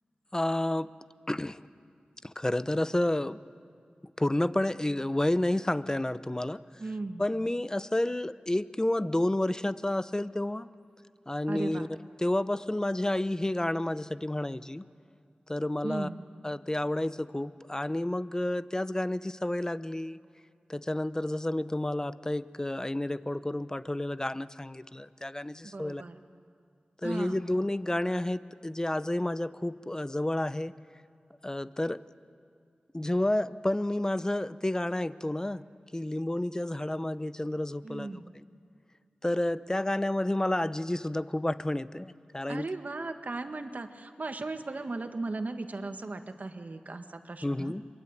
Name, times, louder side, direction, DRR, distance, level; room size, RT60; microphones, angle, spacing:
voice 1, 0.3-0.9 1.3-1.6 2.2-3.4 4.2-6.6 7.2-10.7 11.3-11.9 12.2-14.8 15.5-16.1 16.4-20.2 20.7-26.0 27.0-30.7 31.4-32.0 32.9-35.6 35.9-38.2 39.2-42.7 47.4-47.8, left 1 dB, 20° left, 14 dB, 0.8 m, -30 dB
voice 2, 6.8-7.3 11.5-11.9 15.8-16.2 25.6-26.2 27.0-27.4 37.8-38.3 42.5-47.7, right 3 dB, 55° right, 6 dB, 1.8 m, -37 dB
26.5 x 22.5 x 9.2 m, 2.3 s
cardioid pair, 45°, 3 cm